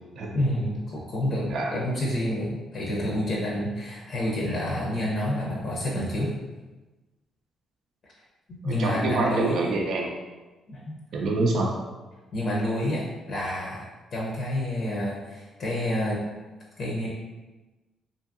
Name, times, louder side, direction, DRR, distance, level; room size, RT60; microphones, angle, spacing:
voice 1, 0.3-6.3 8.5-9.6 10.7-10.8 12.3-16.2 16.8-17.1, left 1 dB, 60° left, -4 dB, 0.6 m, -28 dB
voice 2, 8.6-10.1 11.1-11.7, right 3 dB, 65° right, 0 dB, 0.4 m, -26 dB
2.7 x 2.6 x 2.5 m, 1.2 s
cardioid pair, 90°, 0 cm